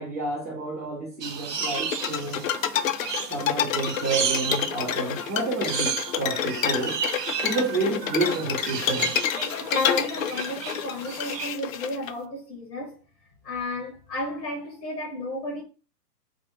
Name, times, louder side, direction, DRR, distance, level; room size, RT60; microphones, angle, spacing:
voice 1, 0.0-2.5 3.3-7.0 7.4-9.1, right 3 dB, 10° right, 0.3 m, -29 dB
sound 1, 1.2-11.5, right 7 dB, 75° right, 1.1 m, -33 dB
sound 2, 1.6-12.1, left 9 dB, 55° left, 0.6 m, -28 dB
voice 2, 9.4-13.0 13.4-15.6, left 1 dB, 85° left, 2.0 m, -33 dB
4.9 x 2.1 x 4.6 m
hypercardioid pair, 140°, 48 cm